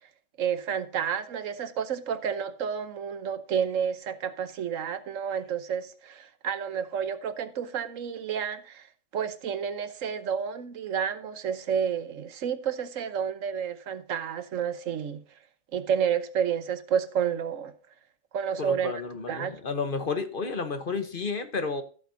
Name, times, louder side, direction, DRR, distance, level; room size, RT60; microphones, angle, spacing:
voice 1, 0.4-8.9 9.1-15.2 15.7-17.7 18.3-18.9 19.3-19.6, right 7 dB, 80° right, 1.3 m, -30 dB
voice 2, 18.6-21.8, left 4 dB, 45° left, 1.1 m, -31 dB
15.5 x 7.3 x 2.7 m
omnidirectional pair, 1.3 m